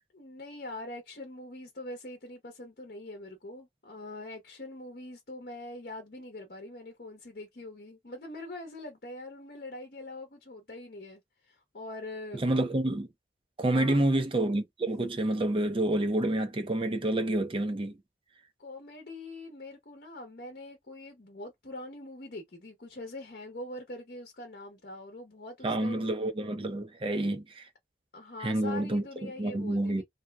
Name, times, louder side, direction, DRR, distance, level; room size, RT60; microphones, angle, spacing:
voice 1, 0.1-12.4 13.7-14.0 18.6-26.2 28.1-30.0, left 2 dB, 55° left, 0.9 m, -43 dB
voice 2, 12.3-13.1 13.6-17.9 25.6-27.7 28.4-30.0, right 1 dB, 30° right, 0.6 m, -28 dB
2.7 x 2.1 x 3.4 m
head